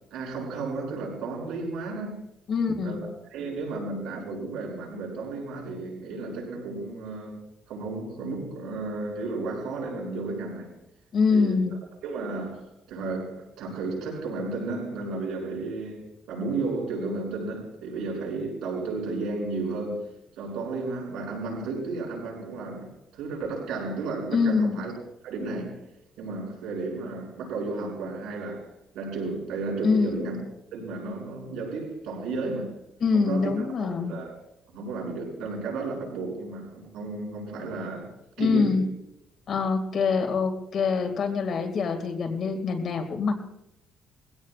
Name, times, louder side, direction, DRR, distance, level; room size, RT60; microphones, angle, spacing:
voice 1, 0.1-2.2 2.8-7.4 7.7-10.7 11.3-11.6 12.0-20.1 20.4-24.9 25.2-25.8 26.2-28.7 28.9-30.4 30.7-32.7 33.1-34.3 34.7-38.1 38.4-38.9, right 3 dB, 75° right, 6.9 m, -33 dB
voice 2, 2.5-3.0 11.1-11.7 24.3-24.8 29.8-30.2 33.0-34.2 38.4-38.8 39.5-43.4, left 5 dB, 45° left, 2.3 m, -24 dB
22.0 x 16.5 x 2.5 m
cardioid pair, 150°, 0 cm